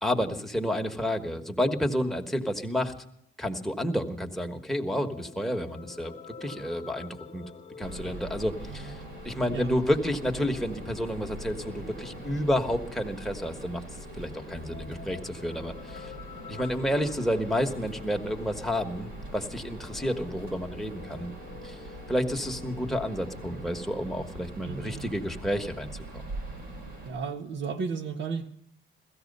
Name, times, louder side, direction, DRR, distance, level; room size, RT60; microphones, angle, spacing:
voice 1, 0.0-2.9 3.4-6.1 6.4-7.4 7.8-13.8 14.2-16.1 16.5-21.3 21.6-21.8 22.1-26.2, equal, ahead, 1.4 m, -30 dB
sound 1, 4.9-24.2, left 5 dB, 35° left, 1.3 m, -48 dB
sound 2, 7.8-27.1, right 2 dB, 90° right, 5.4 m, -43 dB
voice 2, 8.7-9.1 9.5-9.9 24.6-25.0 27.0-28.5, right 5 dB, 65° right, 1.3 m, -34 dB
16.5 x 14.5 x 5.4 m
cardioid pair, 90°, 20 cm